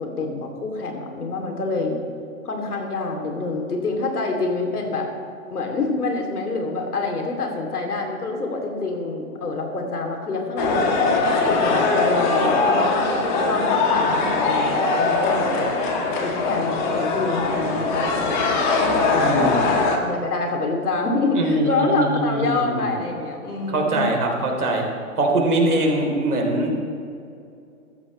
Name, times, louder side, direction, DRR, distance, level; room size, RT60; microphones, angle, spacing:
voice 1, 0.0-2.0 2.4-5.1 5.5-13.1 13.4-15.7 16.2-18.7 19.1-19.4 20.0-24.1, left 3 dB, 85° left, 2 dB, 3.1 m, -26 dB
sound 1, 10.6-20.0, left 3 dB, 30° left, 1.4 m, -21 dB
voice 2, 19.2-19.7 21.4-22.9 23.7-24.8 25.2-26.7, right 1 dB, 80° right, 1 dB, 3.6 m, -22 dB
15.0 x 13.5 x 3.3 m, 2.6 s
hypercardioid pair, 150°, 44 cm